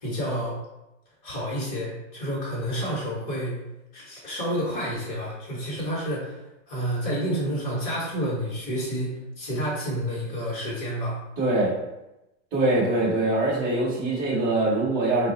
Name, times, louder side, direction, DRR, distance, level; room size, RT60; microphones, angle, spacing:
voice 1, 0.0-0.6 1.2-3.6 3.9-6.4 6.7-11.2, equal, 25° left, -5 dB, 0.8 m, -29 dB
voice 2, 11.4-11.7 12.5-15.3, right 2 dB, 15° right, -7 dB, 0.6 m, -23 dB
3.3 x 2.0 x 3.8 m, 0.95 s
supercardioid pair, 170°, 37 cm